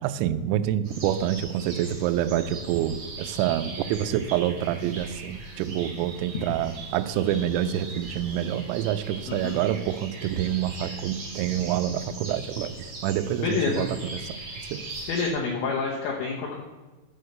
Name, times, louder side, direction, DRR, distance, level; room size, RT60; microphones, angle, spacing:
voice 1, 0.0-12.7 13.0-14.2 14.7-14.8, right 11 dB, 85° right, 10 dB, 2.7 m, -27 dB
sound 1, 0.8-15.3, right 2 dB, 70° right, 1.1 m, -40 dB
voice 2, 13.4-13.9 15.1-16.6, left 5 dB, 75° left, -1 dB, 2.9 m, -28 dB
12.0 x 4.6 x 6.5 m, 1.2 s
omnidirectional pair, 5.8 m